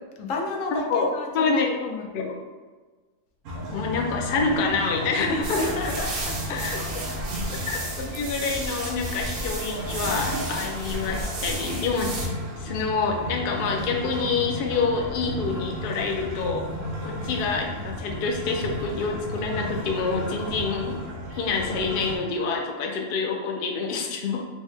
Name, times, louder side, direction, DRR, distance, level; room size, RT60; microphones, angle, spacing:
voice 1, 0.2-2.1 5.3-6.6, left 2 dB, 85° left, 1 dB, 1.0 m, -31 dB
voice 2, 0.7-1.1 1.3-1.7 2.1-2.4 3.7-5.7 6.5-6.8 7.5-12.2 12.6-16.7 17.0-21.0 21.3-24.4, left 4 dB, 60° left, 2 dB, 0.6 m, -27 dB
sound 1, 3.5-22.2, equal, 90° right, 1.1 m, -34 dB
sound 2, 5.4-12.3, right 2 dB, 55° right, 0.8 m, -33 dB
4.5 x 2.1 x 3.2 m, 1.3 s
omnidirectional pair, 1.3 m